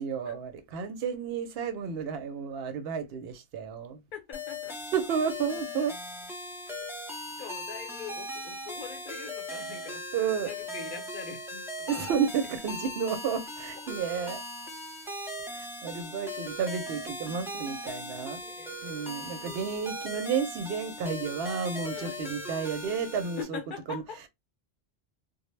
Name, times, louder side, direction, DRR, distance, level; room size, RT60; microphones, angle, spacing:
voice 1, 0.0-4.0 4.9-6.0 10.1-10.5 11.9-14.4 15.4-18.4 18.8-23.6 23.9-24.0, right 6 dB, 65° right, 0.7 m, -32 dB
voice 2, 4.1-4.8 7.4-10.0 10.4-12.1 17.9-18.0 18.4-19.7 21.9-22.3 23.4-24.2, left 6 dB, 55° left, 0.8 m, -43 dB
sound 1, 4.3-23.4, left 1 dB, 5° right, 0.3 m, -39 dB
2.1 x 2.0 x 3.0 m
omnidirectional pair, 1.1 m